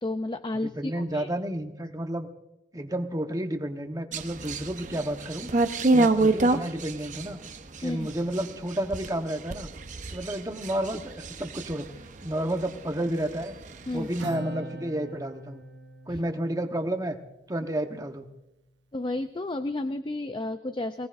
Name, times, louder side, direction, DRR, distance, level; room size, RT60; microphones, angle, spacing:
voice 1, 0.0-1.3 5.8-6.1 7.8-8.1 13.9-14.1 16.1-16.2 18.9-21.1, left 2 dB, 25° left, 10 dB, 0.4 m, -32 dB
voice 2, 0.5-2.3 2.7-5.5 5.9-7.4 7.8-9.7 10.1-11.8 12.2-13.5 13.9-15.6 16.1-17.2 17.5-18.3, right 1 dB, 20° right, 5 dB, 1.0 m, -31 dB
sound 1, 4.1-12.9 13.2-14.2, right 2 dB, 40° right, 0.8 m, -28 dB
Acoustic guitar, 14.2-17.9, right 1 dB, 75° right, 1.1 m, -40 dB
23.0 x 17.5 x 2.6 m, 0.92 s
head